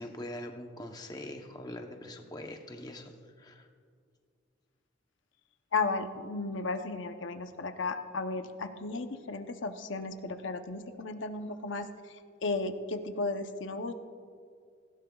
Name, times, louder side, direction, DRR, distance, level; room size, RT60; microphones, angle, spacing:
voice 1, 0.0-3.7, left 1 dB, 20° left, 3 dB, 0.8 m, -43 dB
voice 2, 5.7-13.9, left 3 dB, 80° left, 7 dB, 0.7 m, -34 dB
18.5 x 16.5 x 2.3 m, 2.2 s
head